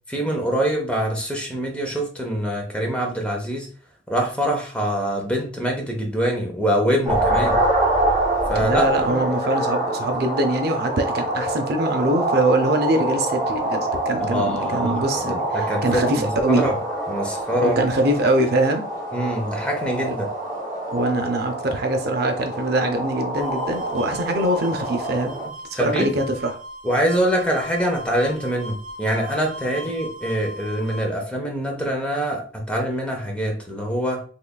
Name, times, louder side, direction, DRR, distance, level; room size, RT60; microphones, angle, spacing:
voice 1, 0.1-3.7 4.1-7.6 8.5-9.3 14.2-16.8 17.1-17.8 19.1-20.3 25.7-26.1 26.8-34.2, equal, 5° left, 1 dB, 0.7 m, -24 dB
sound 1, 7.1-25.5, right 1 dB, 20° right, 1.7 m, -26 dB
voice 2, 8.5-16.7 17.6-18.9 20.1-20.2 20.9-26.6, right 1 dB, 55° right, 5 dB, 0.5 m, -23 dB
sound 2, 23.4-31.1, equal, 30° left, 1.4 m, -38 dB
3.6 x 3.2 x 2.2 m, 0.43 s
head